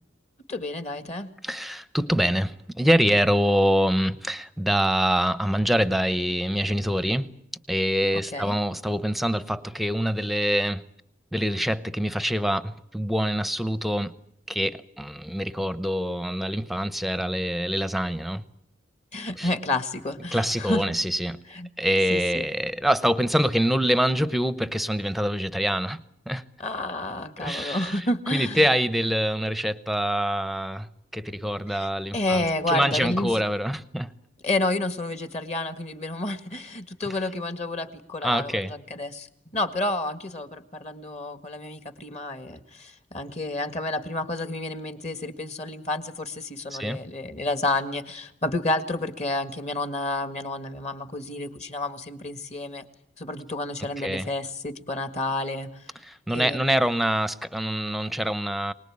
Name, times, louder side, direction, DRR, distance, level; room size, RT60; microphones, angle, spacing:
voice 1, 0.5-1.3 8.3-8.5 19.1-20.8 21.5-21.7 22.1-22.4 26.6-28.6 31.7-31.9 32.1-33.3 34.4-39.3 39.5-52.8 53.2-55.9 56.3-56.9, left 2 dB, 35° left, 1.8 m, -30 dB
voice 2, 1.4-7.3 7.7-10.8 11.3-14.1 14.5-18.5 19.4-19.5 20.3-21.4 21.8-26.4 27.4-28.0 28.3-34.1 38.2-38.7 46.7-47.0 54.0-54.3 56.0-58.7, equal, ahead, 0.9 m, -25 dB
25.0 x 19.5 x 8.8 m
head